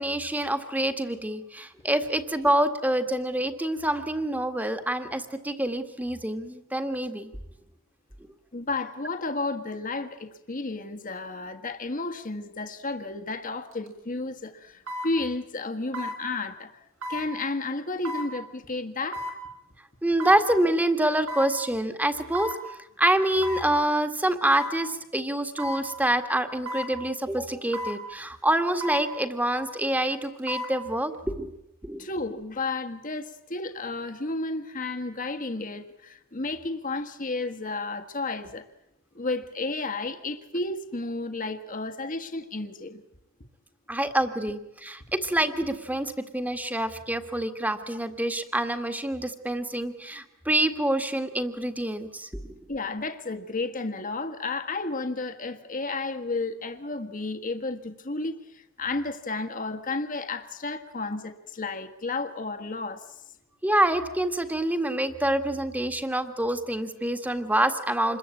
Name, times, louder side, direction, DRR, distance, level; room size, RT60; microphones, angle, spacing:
voice 1, 0.0-7.3 20.0-22.5 23.0-31.5 31.8-32.1 43.9-52.5 63.6-68.2, right 1 dB, 10° right, 8 dB, 1.8 m, -26 dB
voice 2, 8.5-16.7 17.1-19.3 32.0-38.7 39.1-43.0 52.7-63.1 68.0-68.2, left 3 dB, 40° left, 7 dB, 1.6 m, -32 dB
sound 1, 13.7-13.9 14.9-15.1 15.9-16.2 17.0-17.3 18.0-18.3 19.1-19.4 20.2-20.4 21.3-21.5 22.3-22.6 23.4-23.7 24.5-24.8 25.6-25.8 26.7-26.9 27.7-28.0 28.8-29.1 30.2-30.7 31.1-31.2, left 1 dB, 85° right, 6.7 m, -33 dB
27.5 x 22.0 x 8.6 m, 0.84 s
head